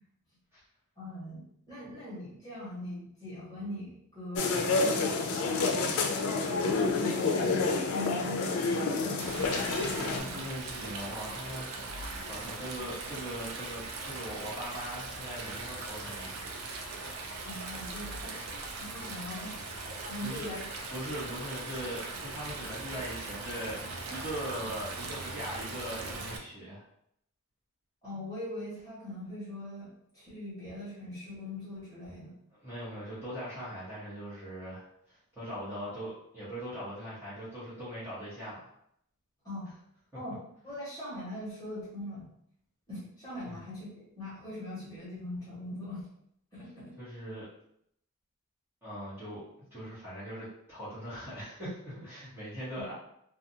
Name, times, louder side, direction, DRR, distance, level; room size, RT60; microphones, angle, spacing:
voice 1, 1.0-6.1 6.8-7.5 7.8-10.4 17.4-18.3 18.8-19.7 20.0-20.6 28.0-32.3 39.4-39.7 40.1-40.4 40.6-42.2 42.9-46.0 46.5-46.9 52.8-52.9, left 1 dB, 15° left, -10 dB, 1.2 m, -41 dB
sound 1, 4.3-10.2, left 3 dB, 75° left, 0.4 m, -28 dB
Stream, 9.2-26.4, right 3 dB, 75° right, 0.5 m, -40 dB
voice 2, 10.1-16.4 20.2-20.5 20.9-23.8 24.1-26.8 32.5-38.7 43.4-43.6 47.0-47.5 48.8-49.4 49.7-52.9, equal, 10° right, -12 dB, 1.1 m, -40 dB
2.5 x 2.3 x 2.7 m, 0.72 s
head